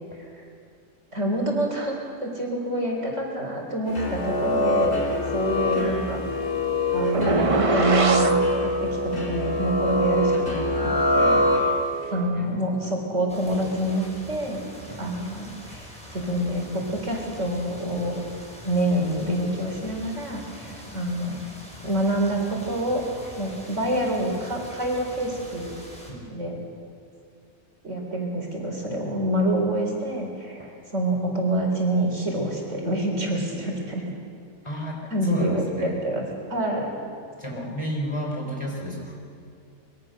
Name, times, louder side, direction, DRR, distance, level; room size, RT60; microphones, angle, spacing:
voice 1, 1.1-4.9 5.3-6.2 6.9-11.8 12.1-14.6 15.0-18.2 18.6-21.4 21.8-23.0 23.4-25.8 26.3-26.6 27.8-34.0 35.1-36.2 36.5-36.9, right 1 dB, 60° right, 0 dB, 4.3 m, -27 dB
sound 1, 3.9-12.1, left 1 dB, 65° left, 3.6 m, -24 dB
sound 2, 7.1-8.4, right 4 dB, 30° right, 0.7 m, -22 dB
voice 2, 12.3-12.7 14.9-15.2 20.7-20.9 26.1-26.4 34.6-36.0 37.4-39.2, equal, 20° left, -1 dB, 4.1 m, -33 dB
sound 3, 13.3-26.1, equal, 5° left, 5.1 m, -44 dB
24.5 x 22.5 x 6.5 m, 2.4 s
omnidirectional pair, 1.4 m